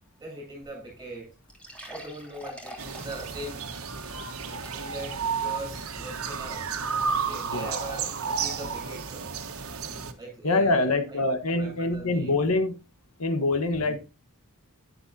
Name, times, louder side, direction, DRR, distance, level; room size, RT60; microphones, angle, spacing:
voice 1, 0.2-1.3 1.8-3.6 4.7-6.7 7.2-9.2 10.2-11.2 11.5-12.4 13.8-13.9, right 1 dB, 15° right, 1 dB, 6.8 m, -40 dB
sound 1, 0.6-0.7 1.0-1.1 1.5-5.1 5.6-5.7 6.2-6.3, equal, 5° left, 3.1 m, -45 dB
sound 2, 2.8-10.1, right 5 dB, 75° right, 1.4 m, -32 dB
voice 2, 10.4-12.7 13.2-14.0, left 2 dB, 90° left, 8 dB, 1.3 m, -25 dB
11.0 x 10.0 x 2.7 m, 0.29 s
head